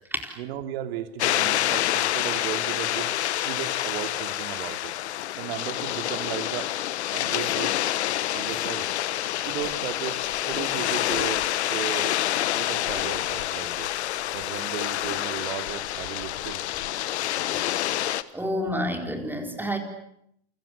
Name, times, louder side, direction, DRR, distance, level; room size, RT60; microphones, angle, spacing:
voice 1, 0.4-3.1 3.4-4.9 5.4-6.7 7.1-7.7 8.3-8.9 9.4-10.2 10.4-11.4 11.7-12.2 12.5-13.9 14.3-16.6, right 11 dB, 70° right, 8 dB, 3.1 m, -35 dB
sound 1, 1.2-18.2, left 13 dB, 85° left, 1.4 m, -27 dB
voice 2, 18.3-19.8, equal, 5° right, 4 dB, 4.3 m, -29 dB
29.0 x 25.0 x 8.2 m, 0.74 s
supercardioid pair, 125°, 33 cm